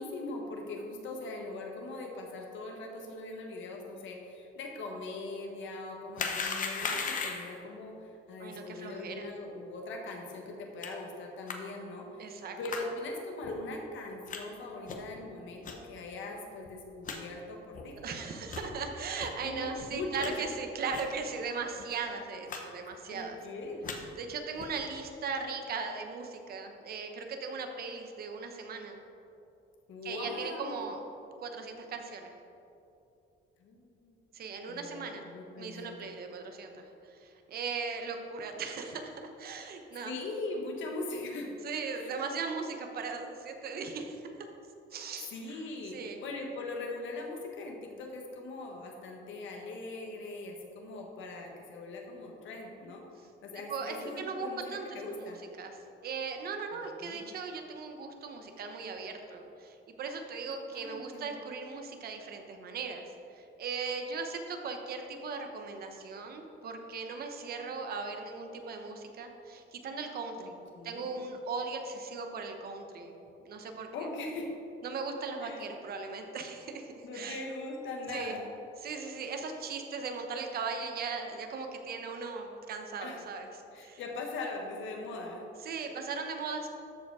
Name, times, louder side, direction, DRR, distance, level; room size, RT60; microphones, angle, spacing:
voice 1, 0.0-18.2 19.4-20.4 23.1-23.8 29.9-30.8 33.6-34.1 34.7-36.1 40.0-41.5 41.9-42.1 45.3-53.0 53.4-55.4 56.7-57.2 60.7-61.3 70.4-71.3 73.9-74.5 75.4-75.6 77.0-78.5 83.0-83.2 83.7-85.5, left 2 dB, 70° left, 1 dB, 1.5 m, -41 dB
sound 1, 6.2-7.6 10.8-10.9 11.5-11.6 12.6-12.9 13.4-13.5 14.3-14.4 14.9-15.1 15.6-15.7 16.3-16.4 16.7-16.8 17.0-17.2 17.7-17.9 18.4-18.7 19.2-19.3 19.8-20.3 20.9-21.1 21.4-21.5 21.8-22.0 22.5-22.6 22.9-23.2 23.6-24.0 24.6-24.8, left 5 dB, 40° left, 0.8 m, -37 dB
voice 2, 8.4-9.3 12.2-12.6 18.0-23.4 24.2-29.0 30.0-31.0 31.4-32.3 34.3-35.3 35.5-40.1 41.6-44.5 44.9-45.6 45.9-46.2 53.7-70.6 70.8-73.2 73.5-73.9 74.8-77.4 78.1-78.3 78.8-84.0 85.6-86.7, right 4 dB, 50° right, 5 dB, 0.9 m, -38 dB
13.0 x 5.0 x 4.8 m, 2.8 s
cardioid pair, 180°, 21 cm